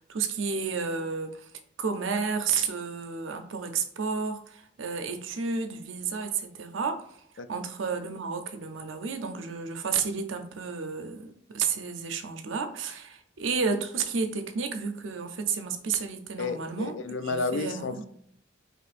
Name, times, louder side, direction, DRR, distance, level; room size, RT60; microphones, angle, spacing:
voice 1, 0.0-1.5 1.8-7.1 7.5-16.9 17.2-18.0, right 5 dB, 85° right, 7 dB, 0.6 m, -31 dB
voice 2, 16.4-18.1, left 3 dB, 75° left, 11 dB, 0.4 m, -31 dB
5.0 x 3.2 x 2.5 m, 0.68 s
head